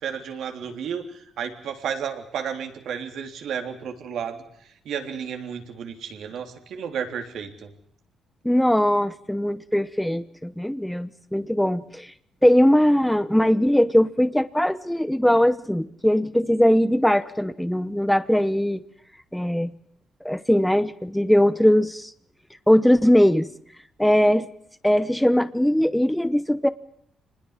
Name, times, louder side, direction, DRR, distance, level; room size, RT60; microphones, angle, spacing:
voice 1, 0.0-7.7, right 7 dB, 70° right, 5 dB, 3.5 m, -32 dB
voice 2, 8.4-12.1 12.4-18.8 19.3-19.7 20.2-22.1 22.7-23.5 24.0-24.5 24.8-26.7, equal, 5° left, 14 dB, 1.0 m, -20 dB
25.5 x 20.5 x 7.5 m, 0.67 s
cardioid pair, 90°, 0 cm